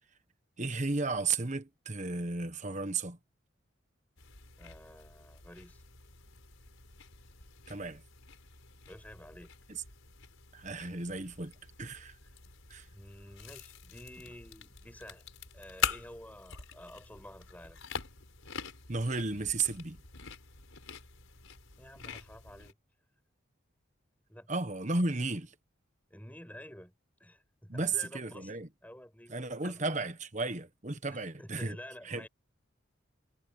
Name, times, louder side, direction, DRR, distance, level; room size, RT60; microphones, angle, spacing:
voice 1, 0.6-3.2 7.7-8.0 9.7-9.8 10.5-11.5 11.8-12.2 12.7-12.9 18.9-20.0 24.5-25.5 27.7-28.7 29.3-31.8 32.0-32.3, right 3 dB, 35° right, 1.3 m, -34 dB
sound 1, 4.2-22.7, left 7 dB, 90° left, 5.1 m, -44 dB
voice 2, 4.6-5.8 8.9-9.5 12.9-15.3 15.5-17.8 21.8-22.8 24.3-24.5 26.1-26.9 27.2-28.5 28.8-29.4 29.6-29.8 31.1-32.3, left 1 dB, 10° left, 6.2 m, -50 dB
head